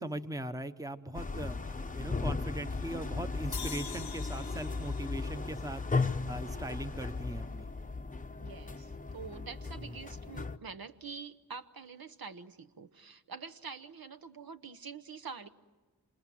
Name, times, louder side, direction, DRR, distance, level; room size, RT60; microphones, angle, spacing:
voice 1, 0.0-1.6 1.9-7.7, right 1 dB, 10° right, 10 dB, 1.0 m, -40 dB
sound 1, 1.1-10.6, left 3 dB, 20° left, 0.8 m, -36 dB
sound 2, 3.5-6.8, left 7 dB, 60° left, 1.0 m, -46 dB
voice 2, 8.4-15.5, right 5 dB, 60° right, 10 dB, 1.0 m, -46 dB
27.0 x 26.5 x 7.7 m, 1.3 s
wide cardioid pair, 70°, 40 cm